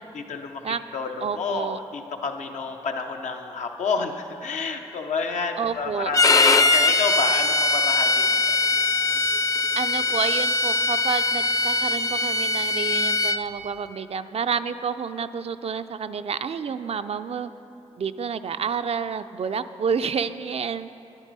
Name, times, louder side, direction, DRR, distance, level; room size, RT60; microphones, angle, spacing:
voice 1, 0.1-8.6, left 4 dB, 80° left, 4 dB, 0.7 m, -30 dB
voice 2, 1.2-1.8 5.6-6.1 9.8-17.5 18.0-20.9, right 6 dB, 55° right, 11 dB, 0.4 m, -29 dB
Bowed string instrument, 6.1-13.4, left 3 dB, 30° left, 0.5 m, -21 dB
10.0 x 9.9 x 4.0 m, 2.8 s
supercardioid pair, 40°, 12 cm